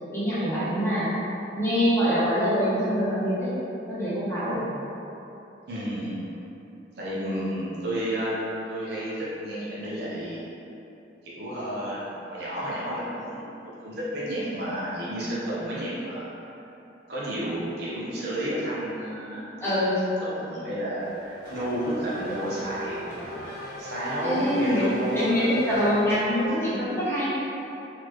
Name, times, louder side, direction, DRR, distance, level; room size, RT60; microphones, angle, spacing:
voice 1, 0.1-1.1 1.6-3.5 3.9-4.6 19.6-20.0 24.2-27.3, equal, 15° left, -12 dB, 1.1 m, -24 dB
voice 2, 5.7-6.1 7.0-8.4 8.7-10.5 11.2-13.4 13.6-16.3 17.1-19.7 20.2-23.3 23.8-25.5 25.9-26.0, right 1 dB, 60° right, -8 dB, 0.9 m, -31 dB
Race car auto racing / Accelerating revving vroom, 21.0-26.5, right 1 dB, 45° left, 1.4 m, -39 dB
4.1 x 3.0 x 3.1 m, 3.0 s
head